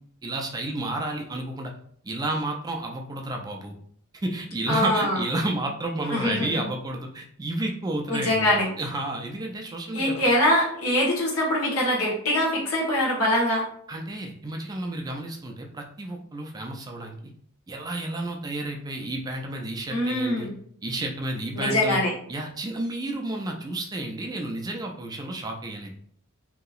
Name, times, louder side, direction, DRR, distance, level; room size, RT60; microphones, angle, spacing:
voice 1, 0.2-1.7 2.0-3.7 4.2-10.2 13.9-17.1 17.7-20.5 20.8-22.0 22.3-26.0, right 2 dB, 20° right, 1 dB, 0.3 m, -31 dB
voice 2, 4.7-5.2 6.1-6.6 8.1-8.7 9.9-13.6 19.9-20.5 21.5-22.1, left 1 dB, 80° left, -4 dB, 1.2 m, -23 dB
2.8 x 2.7 x 2.4 m, 0.62 s
head